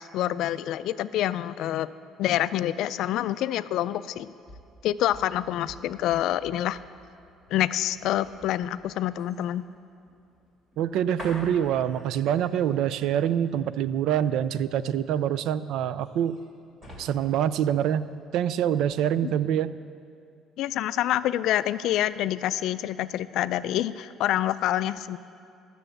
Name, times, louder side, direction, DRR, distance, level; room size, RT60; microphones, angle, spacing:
voice 1, 0.0-1.9 2.2-4.3 4.8-6.8 7.5-9.6 19.2-19.3 20.6-25.2, left 12 dB, 65° left, 15 dB, 0.3 m, -27 dB
sound 1, 4.1-18.4 18.8-19.0, equal, 15° right, 2.6 m, -49 dB
voice 2, 10.8-16.4 17.0-19.7, right 10 dB, 65° right, 15 dB, 0.4 m, -25 dB
12.0 x 6.8 x 7.7 m, 2.4 s
cardioid pair, 160°, 0 cm